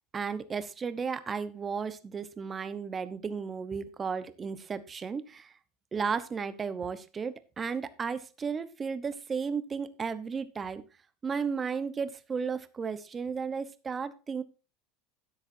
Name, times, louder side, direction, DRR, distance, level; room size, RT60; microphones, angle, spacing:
voice 1, 0.1-5.5 5.9-10.8 11.2-14.4, right 5 dB, 20° right, 13 dB, 0.9 m, -34 dB
12.5 x 9.8 x 2.7 m, 0.32 s
supercardioid pair, 145°, 0 cm